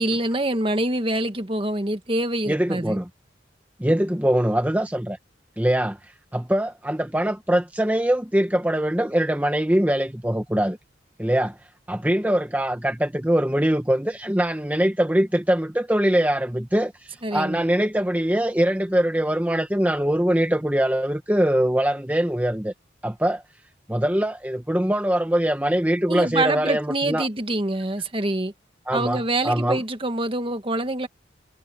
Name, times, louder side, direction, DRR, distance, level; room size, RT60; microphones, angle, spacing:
voice 1, 0.0-3.0 17.2-17.7 26.1-28.5 28.9-31.1, right 1 dB, 30° right, 1.5 m, -25 dB
voice 2, 2.5-3.1 3.8-5.2 5.6-10.8 11.2-11.6 11.9-22.7 23.0-23.4 23.9-27.3 28.9-29.8, right 1 dB, 10° right, 1.0 m, -22 dB
head